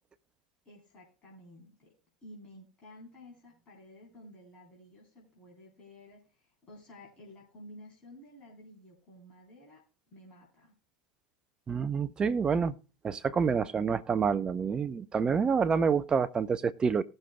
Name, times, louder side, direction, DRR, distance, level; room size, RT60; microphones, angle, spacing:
voice 1, 0.7-1.9 2.2-6.2 6.6-9.8 10.1-10.7, left 1 dB, 30° left, -4 dB, 3.8 m, -52 dB
voice 2, 11.7-12.7 13.0-17.0, right 6 dB, 20° right, 13 dB, 0.6 m, -28 dB
19.0 x 6.6 x 2.3 m, 0.35 s
figure-of-eight pair, 85°, 4 cm